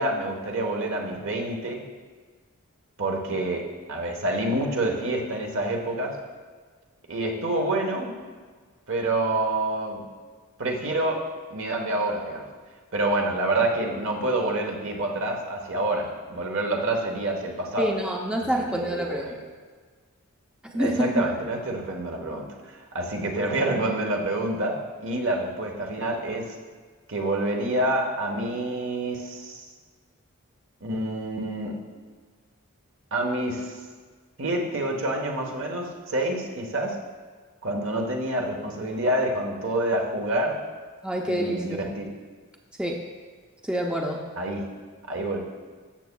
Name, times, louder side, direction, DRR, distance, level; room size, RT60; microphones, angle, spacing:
voice 1, 0.0-1.8 3.0-6.2 7.1-8.2 8.9-10.0 10.6-11.2 11.5-12.5 12.9-17.9 18.7-19.3 20.7-26.5 27.1-29.7 30.8-31.8 33.1-33.8 34.4-37.0 37.6-40.6 41.2-42.1 44.4-44.7 45.1-45.4, right 1 dB, 65° right, 1 dB, 1.2 m, -27 dB
voice 2, 17.8-19.4 20.7-21.1 41.0-41.8 42.8-43.0 43.6-44.3, equal, 5° right, 0 dB, 0.5 m, -27 dB
13.5 x 7.1 x 2.3 m, 1.5 s
head